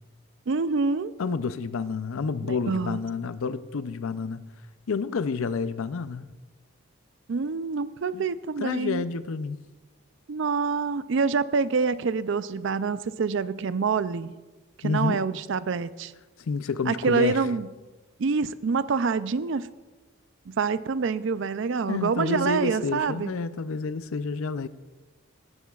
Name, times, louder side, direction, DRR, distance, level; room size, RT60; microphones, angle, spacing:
voice 1, 0.5-1.1 2.4-3.0 7.3-9.0 10.3-14.3 14.8-16.1 16.9-17.7 18.2-19.7 20.5-23.3, right 5 dB, 60° right, 0.4 m, -26 dB
voice 2, 1.2-4.4 4.9-6.3 8.1-8.2 8.6-9.6 14.8-15.3 16.4-17.4 21.9-24.7, left 4 dB, 75° left, 0.5 m, -29 dB
17.5 x 12.5 x 2.4 m
head